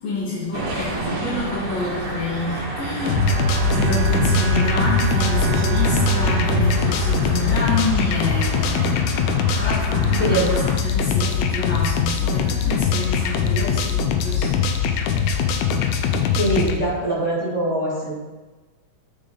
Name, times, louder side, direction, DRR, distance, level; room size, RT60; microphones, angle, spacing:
voice 1, 0.0-3.2 3.6-9.2 9.5-15.1, left 2 dB, 65° left, -9 dB, 2.7 m, -28 dB
sound 1, 0.5-10.8, right 2 dB, 60° right, 1.1 m, -30 dB
Bowed string instrument, 2.9-8.3, right 9 dB, 90° right, 2.0 m, -26 dB
sound 2, 3.1-16.8, left 7 dB, 85° left, 2.1 m, -22 dB
voice 2, 16.4-18.1, right 1 dB, 25° left, -8 dB, 2.5 m, -22 dB
8.6 x 5.0 x 3.9 m, 1.2 s
omnidirectional pair, 3.4 m